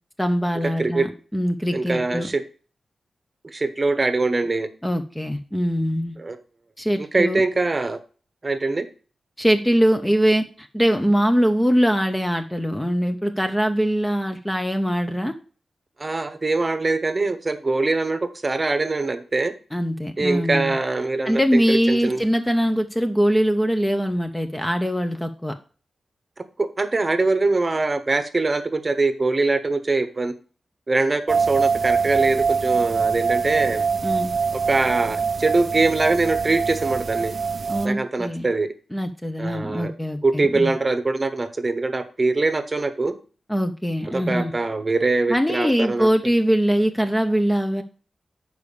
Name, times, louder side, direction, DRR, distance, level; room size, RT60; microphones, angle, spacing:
voice 1, 0.2-2.3 4.8-6.2 6.8-7.4 9.4-15.3 19.7-20.7 21.2-25.5 34.0-34.3 37.7-38.5 38.9-40.7 43.5-44.5 45.3-47.8, equal, 5° left, 6 dB, 0.7 m, -22 dB
voice 2, 1.7-2.4 3.4-4.7 6.2-6.4 7.0-8.0 8.4-8.8 16.0-19.5 20.2-22.2 26.6-30.3 30.9-33.9 34.5-37.3 37.8-38.7 39.4-39.9 40.2-43.1 44.1-46.1, right 3 dB, 30° right, 10 dB, 0.9 m, -23 dB
sound 1, 31.3-37.9, right 5 dB, 50° right, 0.3 m, -23 dB
6.9 x 4.9 x 6.8 m, 0.38 s
wide cardioid pair, 120°, 0 cm